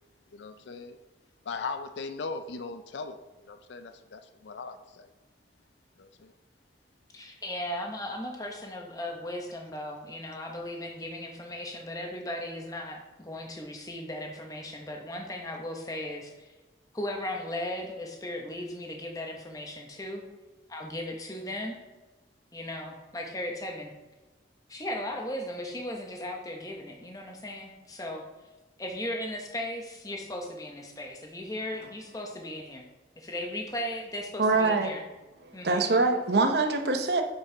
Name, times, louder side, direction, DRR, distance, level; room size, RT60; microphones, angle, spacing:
voice 1, 0.3-1.0 1.5-5.1 6.0-6.3, left 4 dB, 85° left, 9 dB, 0.5 m, -39 dB
voice 2, 7.1-16.5 16.9-20.2 20.7-21.8 22.5-23.9 24.7-28.2 28.8-32.8 33.2-35.0 35.5-36.0, left 1 dB, 20° left, 1 dB, 0.9 m, -37 dB
voice 3, 34.4-34.9 35.6-37.2, right 3 dB, 70° right, 5 dB, 0.8 m, -24 dB
7.1 x 5.3 x 3.9 m, 1.2 s
head